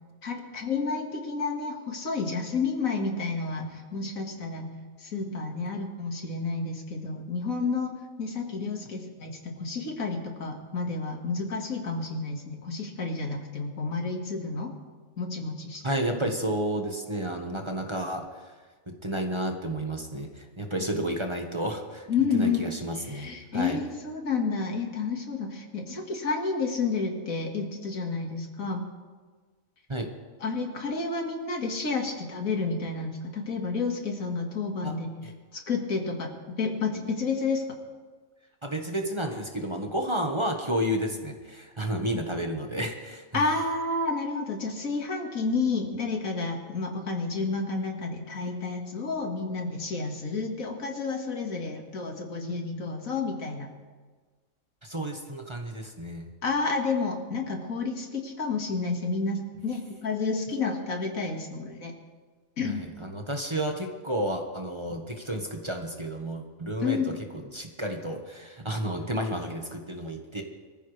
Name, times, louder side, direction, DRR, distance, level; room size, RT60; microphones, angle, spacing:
voice 1, 0.2-4.7 5.0-14.7 15.2-16.0 16.2-16.3 20.9-21.0 22.1-22.6 23.0-28.8 30.4-35.1 35.7-36.3 36.6-37.6 43.3-53.7 56.4-61.9 62.6-62.8 66.8-67.2, left 4 dB, 90° left, 2 dB, 2.3 m, -30 dB
voice 2, 15.8-18.5 18.9-23.8 29.9-30.1 34.8-35.0 35.2-35.3 38.6-43.4 54.8-56.3 62.6-70.4, right 1 dB, 20° right, 3 dB, 1.3 m, -31 dB
24.5 x 14.0 x 3.3 m, 1.4 s
omnidirectional pair, 1.4 m